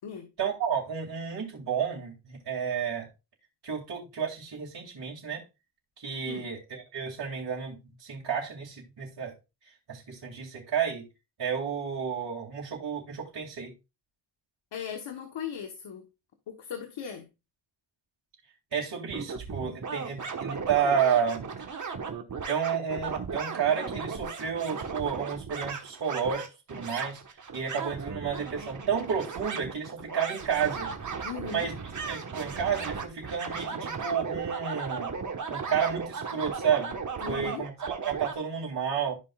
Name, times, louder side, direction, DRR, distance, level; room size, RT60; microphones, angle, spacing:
voice 1, 0.4-3.1 3.6-5.4 6.0-9.3 9.9-11.1 11.4-13.7 18.7-21.4 22.5-27.2 27.5-30.9 31.5-31.8 32.1-35.1 35.5-37.0 37.3-39.2, right 7 dB, 60° right, 2.6 m, -31 dB
voice 2, 14.7-16.1 16.5-17.3 31.2-31.7 37.2-37.7, left 8 dB, 80° left, 1.4 m, -38 dB
sound 1, 19.1-38.3, right 5 dB, 40° right, 1.4 m, -36 dB
13.0 x 5.4 x 2.4 m
cardioid pair, 100°, 44 cm